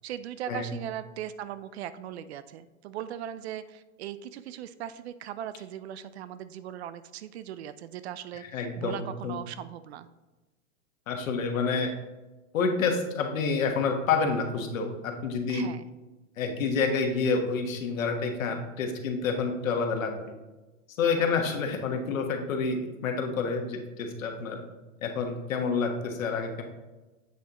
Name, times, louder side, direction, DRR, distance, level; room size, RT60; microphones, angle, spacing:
voice 1, 0.0-10.1 15.5-15.8 21.1-21.5, right 10 dB, 55° right, 14 dB, 0.5 m, -39 dB
voice 2, 8.5-9.3 11.1-11.9 12.5-15.7 16.4-20.3 21.0-24.6 25.0-26.6, left 4 dB, 80° left, 4 dB, 1.4 m, -28 dB
8.1 x 6.4 x 3.0 m, 1.1 s
supercardioid pair, 155°, 39 cm